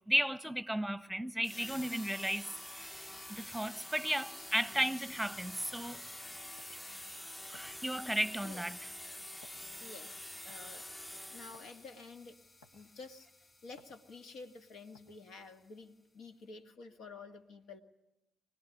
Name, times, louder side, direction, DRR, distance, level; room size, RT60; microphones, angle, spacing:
voice 1, 0.0-6.0 7.5-8.9, right 1 dB, 5° right, 1.2 m, -35 dB
sound 1, 1.4-12.0, left 1 dB, 15° left, 0.9 m, -47 dB
sound 2, 5.1-16.4, left 2 dB, 40° left, 7.1 m, -63 dB
sound 3, 6.6-6.8 7.5-7.8 8.4-8.7 9.4-9.7 10.5-10.8 11.5-11.7 12.6-12.9 13.8-14.0 14.9-15.2, left 3 dB, 90° left, 1.8 m, -61 dB
voice 2, 9.8-10.9 11.3-12.4 12.7-17.8, left 4 dB, 70° left, 1.9 m, -51 dB
24.5 x 19.5 x 9.9 m
hypercardioid pair, 45°, 0 cm